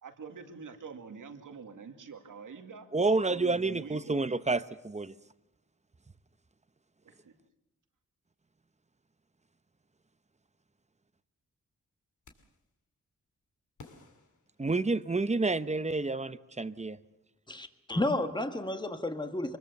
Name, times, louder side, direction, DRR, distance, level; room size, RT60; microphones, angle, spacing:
voice 1, 0.0-2.9 3.2-4.2 7.0-7.4, right 5 dB, 90° right, 5 dB, 2.2 m, -46 dB
voice 2, 2.9-5.1 14.6-17.0, right 3 dB, 20° right, 13 dB, 0.9 m, -29 dB
sound 1, 12.2-12.7 13.8-15.3, left 4 dB, 75° left, 2.6 m, -55 dB
voice 3, 17.5-19.6, left 1 dB, 15° left, 7 dB, 1.7 m, -32 dB
24.5 x 21.0 x 6.9 m, 0.90 s
wide cardioid pair, 80°, 31 cm